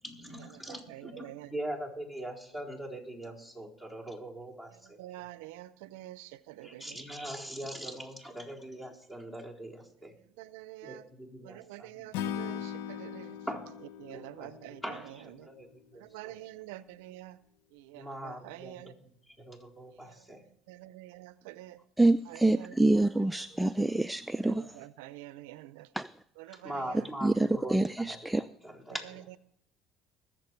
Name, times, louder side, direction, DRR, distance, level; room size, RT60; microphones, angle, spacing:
voice 1, 0.0-5.0 6.6-10.1 10.8-12.1 13.5-13.7 14.0-16.3 17.9-20.4 26.5-29.3, right 1 dB, 20° left, -1 dB, 4.0 m, -42 dB
voice 2, 0.9-1.5 5.0-7.0 10.4-11.0 11.4-13.4 14.0-15.5 16.0-17.4 17.7-18.9 20.0-20.2 20.7-21.8 22.3-23.1 24.4-25.9 26.4-27.1 27.4-27.5, right 16 dB, 85° right, 16 dB, 0.5 m, -47 dB
Acoustic guitar / Strum, 12.1-15.4, left 9 dB, 85° left, 0.6 m, -39 dB
voice 3, 22.0-24.7 26.0-26.1 27.2-28.4, right 2 dB, 5° right, 12 dB, 0.4 m, -26 dB
21.0 x 7.6 x 4.5 m, 0.71 s
supercardioid pair, 85°, 0 cm